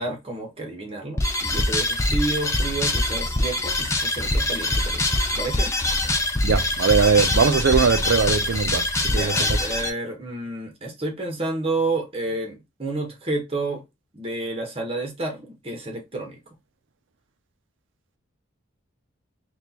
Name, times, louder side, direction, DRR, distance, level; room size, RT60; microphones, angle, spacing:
voice 1, 0.0-5.0 5.3-5.7 9.1-13.8 14.1-16.4, right 2 dB, 30° right, 1.0 m, -30 dB
sound 1, 1.2-9.9, left 1 dB, 15° left, 0.5 m, -24 dB
voice 2, 6.4-8.9 9.1-9.4, right 5 dB, 75° right, 0.5 m, -20 dB
6.1 x 2.4 x 2.8 m
head